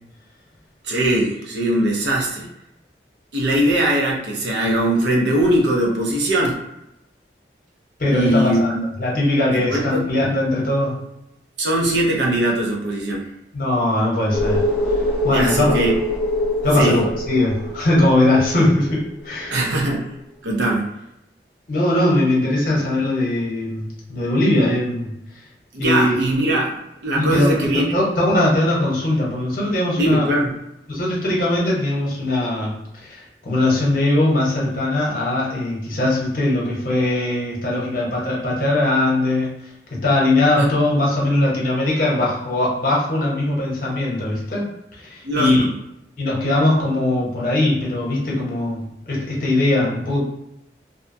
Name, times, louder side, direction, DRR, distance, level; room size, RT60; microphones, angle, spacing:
voice 1, 0.8-2.5 3.3-6.6 8.1-8.8 9.5-10.0 11.6-13.3 15.3-15.9 16.8-17.0 19.5-20.1 20.4-20.9 25.7-27.8 30.0-30.5 40.6-40.7 45.2-45.7, right 1 dB, 80° right, -1 dB, 0.7 m, -20 dB
voice 2, 8.0-8.7 9.0-11.0 13.5-15.8 16.6-19.6 21.7-25.1 25.8-26.2 27.1-30.3 30.9-39.5 39.9-44.7 45.0-45.6 46.2-50.2, left 1 dB, 50° left, -4 dB, 0.9 m, -20 dB
sound 1, 14.3-19.5 19.8-19.9, left 1 dB, 5° right, 0.5 m, -24 dB
2.6 x 2.2 x 2.6 m, 0.85 s
head